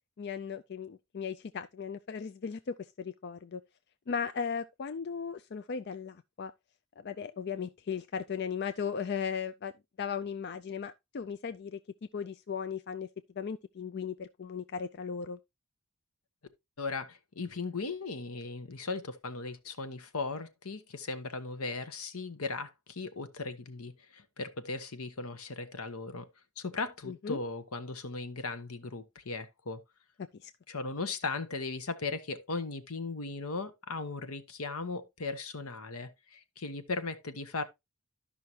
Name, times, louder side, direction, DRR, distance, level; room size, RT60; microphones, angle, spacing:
voice 1, 0.2-3.6 4.1-6.5 7.0-9.7 10.0-11.8 12.1-13.1 13.4-15.4 27.1-27.4 30.4-30.5, left 6 dB, 50° left, 0.4 m, -37 dB
voice 2, 16.8-26.3 26.6-29.8 30.7-37.6, left 3 dB, 80° left, 1.1 m, -37 dB
12.5 x 5.7 x 2.8 m
head